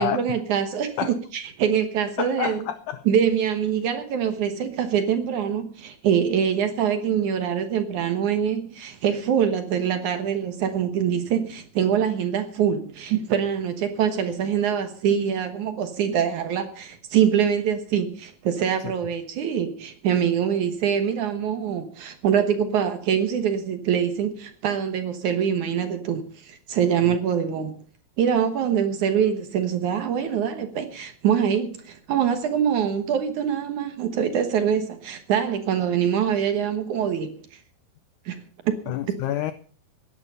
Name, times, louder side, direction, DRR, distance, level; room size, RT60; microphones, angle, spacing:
voice 1, 0.0-2.6 3.1-27.8 28.2-37.6 38.3-38.8, right 8 dB, 65° right, 2.2 m, -24 dB
voice 2, 2.2-3.1 18.8-18.9 27.0-27.2 38.9-39.5, left 11 dB, 85° left, 1.7 m, -28 dB
16.5 x 11.0 x 5.6 m
omnidirectional pair, 4.5 m